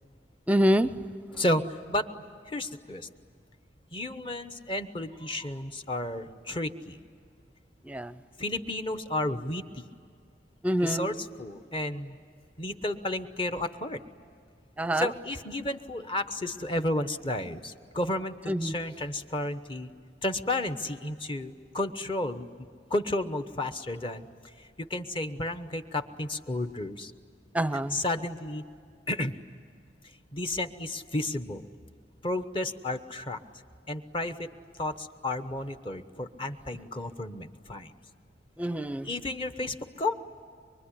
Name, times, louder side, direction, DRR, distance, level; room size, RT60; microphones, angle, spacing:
voice 1, 0.5-0.9 7.9-8.1 10.6-11.1 14.8-15.1 18.5-18.7 27.5-28.0 38.6-39.1, equal, 10° right, 13 dB, 0.6 m, -26 dB
voice 2, 1.4-2.1 2.5-3.1 3.9-7.0 8.4-9.8 10.8-12.2 12.6-14.0 14.9-19.9 20.2-22.5 22.9-24.3 24.8-27.1 27.9-28.6 29.1-29.3 30.3-31.6 32.2-33.4 33.9-34.5 34.8-37.9 39.0-40.1, left 1 dB, 30° left, 9 dB, 1.0 m, -32 dB
24.0 x 24.0 x 10.0 m, 2.2 s
head